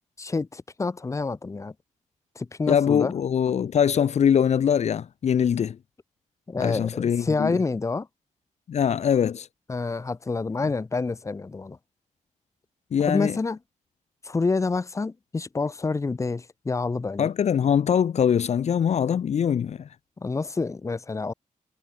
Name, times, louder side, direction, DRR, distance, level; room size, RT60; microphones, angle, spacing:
voice 1, 0.2-1.7 2.3-3.1 6.5-8.1 9.7-11.8 13.0-13.6 14.2-17.3 20.2-21.3, left 3 dB, 25° left, 1.4 m, -28 dB
voice 2, 2.7-5.8 6.6-7.6 8.7-9.5 12.9-13.4 17.2-19.9, left 8 dB, 60° left, 1.0 m, -22 dB
wide cardioid pair, 165°, 13 cm